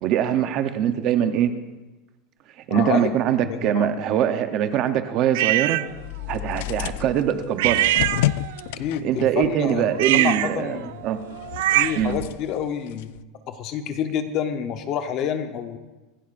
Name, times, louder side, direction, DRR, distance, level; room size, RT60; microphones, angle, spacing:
voice 1, 0.0-1.5 2.7-5.8 6.3-7.9 9.0-11.2 12.0-12.1, right 10 dB, 35° right, 9 dB, 0.7 m, -22 dB
voice 2, 2.7-3.1 3.4-3.9 8.8-11.0 11.7-13.2 13.5-15.8, left 8 dB, 35° left, 8 dB, 0.9 m, -28 dB
sound 1, 5.3-5.9 7.6-8.7 9.9-12.2, right 16 dB, 70° right, 0.3 m, -23 dB
sound 2, 5.9-10.8 11.1-13.2, left 15 dB, 65° left, 0.3 m, -31 dB
25.0 x 11.5 x 2.5 m, 1.1 s
supercardioid pair, 175°, 0 cm